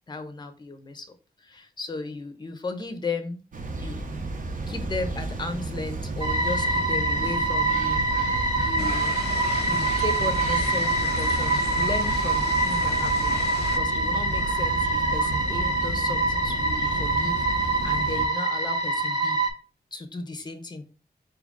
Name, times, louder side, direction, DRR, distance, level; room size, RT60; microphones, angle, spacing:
voice 1, 0.1-3.4 3.8-4.0 4.7-9.2 9.6-19.4 19.9-20.8, left 3 dB, 25° left, 8 dB, 0.6 m, -35 dB
sound 1, 3.5-18.3, right 2 dB, 55° right, 0.7 m, -32 dB
sound 2, 6.2-19.5, right 2 dB, 25° right, 0.8 m, -25 dB
sound 3, 8.8-13.8, left 7 dB, 85° left, 0.4 m, -37 dB
4.5 x 2.4 x 3.6 m, 0.36 s
wide cardioid pair, 105°, 17 cm